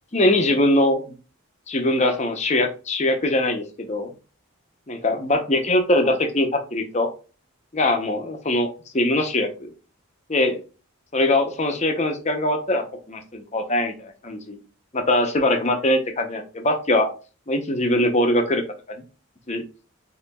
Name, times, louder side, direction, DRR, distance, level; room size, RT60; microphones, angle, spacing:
voice 1, 0.1-1.0 1.7-4.1 4.9-7.1 7.7-8.7 8.9-9.7 10.3-10.6 11.1-14.6 14.9-17.1 17.5-18.6 18.9-19.0 19.5-19.6, left 1 dB, 30° left, 5 dB, 0.7 m, -22 dB
6.7 x 2.8 x 2.3 m, 0.34 s
head